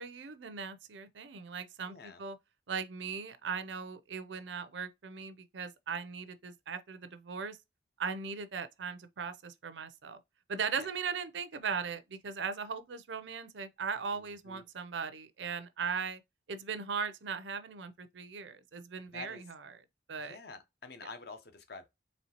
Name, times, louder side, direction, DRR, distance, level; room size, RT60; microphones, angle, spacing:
voice 1, 0.0-2.4 2.7-7.6 8.0-10.2 10.5-16.2 16.5-19.6 20.1-20.4, right 5 dB, 75° right, 0.6 m, -38 dB
voice 2, 1.8-2.2 10.7-10.9 14.1-14.6 19.1-19.5 20.2-21.9, left 3 dB, 55° left, 0.7 m, -48 dB
4.2 x 3.2 x 2.8 m
head